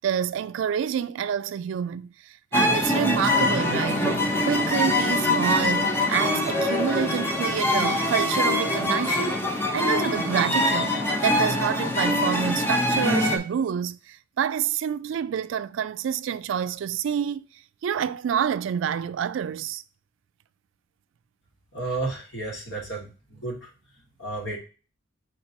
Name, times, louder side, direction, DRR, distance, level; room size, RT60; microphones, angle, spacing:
voice 1, 0.0-9.4 9.7-17.5 17.8-19.8, right 8 dB, 75° right, 0.3 m, -28 dB
sound 1, 2.5-13.4, left 1 dB, 10° left, 0.6 m, -24 dB
voice 2, 21.7-23.7 24.2-24.6, right 2 dB, 65° left, 1.8 m, -32 dB
4.5 x 4.3 x 2.7 m
head